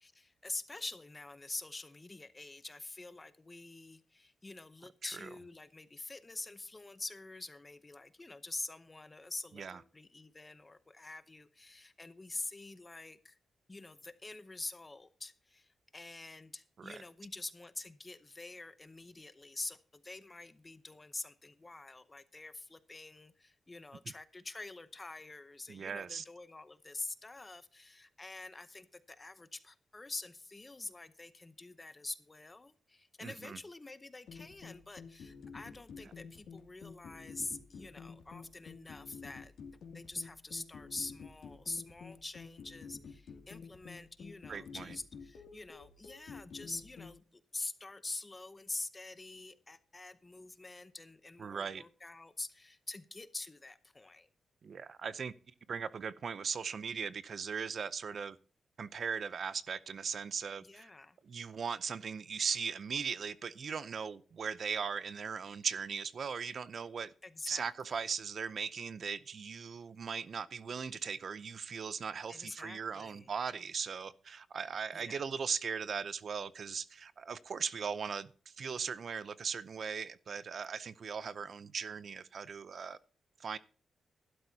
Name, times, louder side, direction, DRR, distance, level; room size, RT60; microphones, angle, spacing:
voice 1, 0.0-13.4 13.7-54.3 60.6-61.2 67.2-67.7 72.3-73.3 74.9-75.2, left 2 dB, 20° left, 0.8 m, -46 dB
voice 2, 25.7-26.2 33.2-33.6 44.5-44.9 51.4-51.8 54.6-55.3 55.7-58.4 58.8-60.9 61.2-67.1 67.5-83.0 83.4-83.6, right 6 dB, 45° right, 0.5 m, -38 dB
sound 1, 34.3-47.2, left 5 dB, 80° left, 2.4 m, -50 dB
16.0 x 12.0 x 2.8 m
wide cardioid pair, 170°, 0 cm